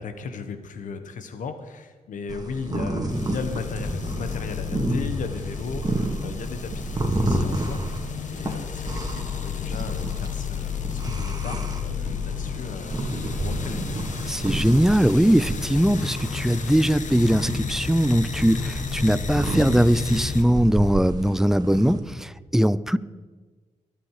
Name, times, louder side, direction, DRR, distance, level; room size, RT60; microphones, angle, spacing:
voice 1, 0.0-13.0 13.3-13.8 14.2-14.6, left 5 dB, 90° left, 9 dB, 1.4 m, -36 dB
sound 1, 2.3-22.0, right 1 dB, 30° right, 2.5 m, -31 dB
sound 2, 3.1-20.4, left 6 dB, 75° left, 1.5 m, -32 dB
voice 2, 14.3-23.0, equal, 5° right, 17 dB, 0.6 m, -21 dB
23.5 x 8.9 x 5.0 m, 1.3 s
cardioid pair, 60°, 13 cm